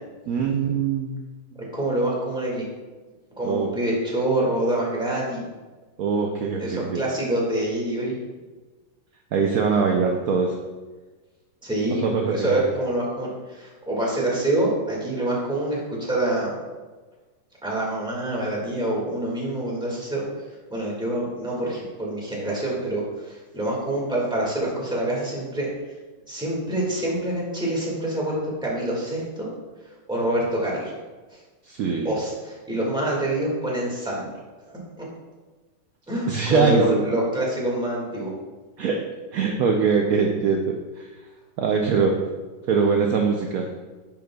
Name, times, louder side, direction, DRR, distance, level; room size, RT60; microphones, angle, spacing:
voice 1, 0.3-1.3 3.4-3.7 6.0-7.0 9.3-10.6 12.0-12.6 31.7-32.1 36.3-37.0 38.8-39.0 39.3-41.1 41.6-42.2 42.7-43.7, right 5 dB, 75° right, 2 dB, 0.8 m, -22 dB
voice 2, 1.7-2.7 3.4-5.4 6.6-8.1 11.6-12.0 12.3-16.5 17.6-20.2 20.7-25.7 26.3-29.5 30.1-30.9 31.3-31.4 32.0-34.3 34.7-35.0 36.1-38.3, right 1 dB, 5° right, -4 dB, 1.6 m, -26 dB
10.0 x 5.8 x 2.3 m, 1.3 s
omnidirectional pair, 2.1 m